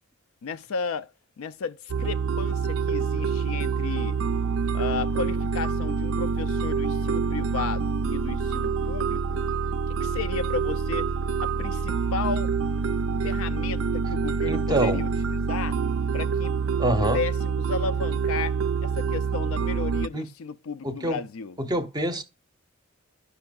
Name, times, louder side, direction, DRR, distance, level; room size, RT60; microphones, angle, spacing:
voice 1, 0.4-4.2 4.7-9.4 9.9-11.1 11.4-12.5 13.2-15.8 16.1-16.5 17.0-21.6, left 5 dB, 85° left, 0.4 m, -34 dB
sound 1, 1.9-20.1, right 5 dB, 70° right, 0.3 m, -26 dB
voice 2, 14.5-15.0 16.8-17.2 20.1-20.3 20.8-21.2 21.6-22.2, right 1 dB, 20° right, 0.6 m, -26 dB
11.5 x 5.5 x 2.3 m
head